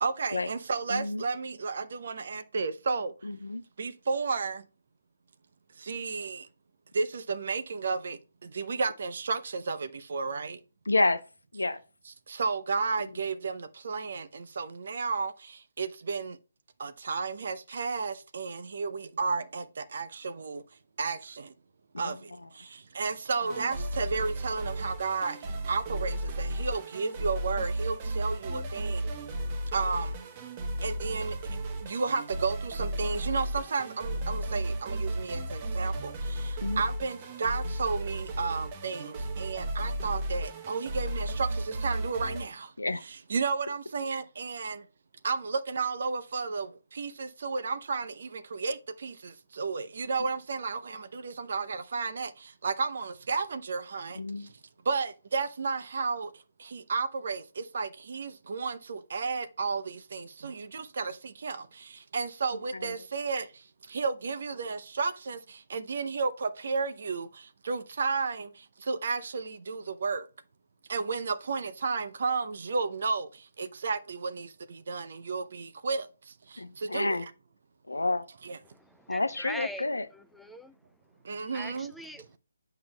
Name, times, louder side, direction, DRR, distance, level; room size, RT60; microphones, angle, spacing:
voice 1, 0.0-3.3 3.8-4.6 5.8-6.5 6.9-10.6 12.3-16.4 16.8-20.6 21.0-21.5 22.0-29.0 29.7-30.2 30.8-42.7 43.1-44.9 45.2-54.6 54.8-70.3 70.9-77.2 78.4-78.6 81.2-81.9, right 4 dB, 55° right, 0.7 m, -33 dB
voice 2, 0.9-1.2 3.2-3.6 10.9-11.2 11.5-11.8 13.0-13.1 22.0-22.2 23.4-23.7 36.6-36.8 42.8-43.0 54.1-54.5 62.7-63.0 76.6-77.3 77.9-78.2 79.1-80.1, left 2 dB, 85° left, 0.7 m, -30 dB
sound 1, 23.4-42.4, right 1 dB, 25° right, 0.9 m, -34 dB
voice 3, 78.6-79.9 80.1-80.8 81.4-82.4, equal, ahead, 0.4 m, -43 dB
8.6 x 5.7 x 2.3 m
figure-of-eight pair, 145°, 0 cm